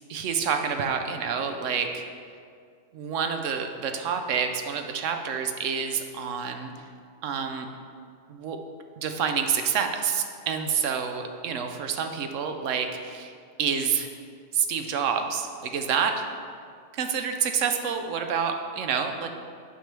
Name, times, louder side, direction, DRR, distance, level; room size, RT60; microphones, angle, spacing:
voice 1, 0.1-2.0 2.9-6.7 7.2-7.7 8.3-8.6 9.0-13.3 13.6-14.1 14.5-16.3 16.9-19.3, right 6 dB, 70° right, 6 dB, 0.9 m, -28 dB
9.1 x 5.2 x 3.3 m, 2.2 s
omnidirectional pair, 1.4 m